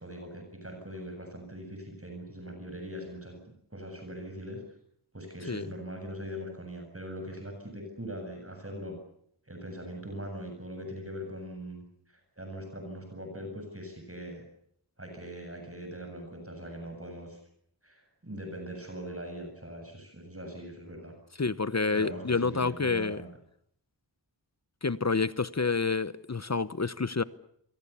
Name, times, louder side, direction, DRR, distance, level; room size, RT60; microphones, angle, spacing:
voice 1, 0.0-3.4 3.7-4.6 5.1-9.0 9.4-14.4 15.0-17.4 17.8-21.1 21.9-23.3, equal, 30° right, 7.7 m, -41 dB
voice 2, 21.4-23.2 24.8-27.2, left 4 dB, 40° left, 0.9 m, -28 dB
28.0 x 23.5 x 7.0 m
wide cardioid pair, 60°, 42 cm